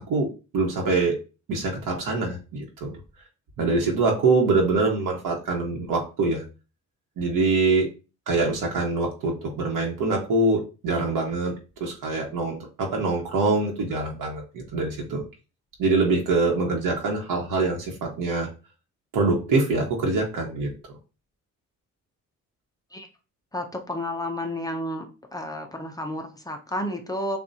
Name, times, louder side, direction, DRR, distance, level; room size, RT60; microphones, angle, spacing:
voice 1, 0.5-1.1 1.5-3.0 3.6-6.4 7.2-7.9 8.3-11.5 11.8-15.2 15.8-18.5 19.1-20.7, right 3 dB, 80° right, -1 dB, 1.1 m, -24 dB
voice 2, 23.5-25.1 25.3-27.4, left 1 dB, 10° left, 3 dB, 0.5 m, -31 dB
7.0 x 2.4 x 2.7 m, 0.32 s
cardioid pair, 155°, 32 cm